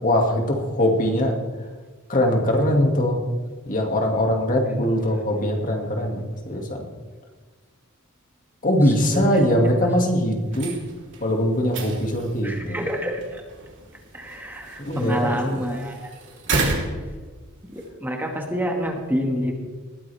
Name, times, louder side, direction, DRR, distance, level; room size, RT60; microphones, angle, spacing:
voice 1, 0.0-1.3 2.1-3.2 3.7-6.8 8.6-10.7 11.2-12.8 14.8-15.8, equal, 40° left, 2 dB, 2.3 m, -22 dB
voice 2, 9.1-9.4 12.4-13.4 14.1-16.1 17.7-19.5, equal, 10° right, 1 dB, 1.9 m, -27 dB
sound 1, 10.4-17.9, right 2 dB, 60° right, 3.6 m, -32 dB
20.5 x 14.0 x 3.5 m, 1.4 s
head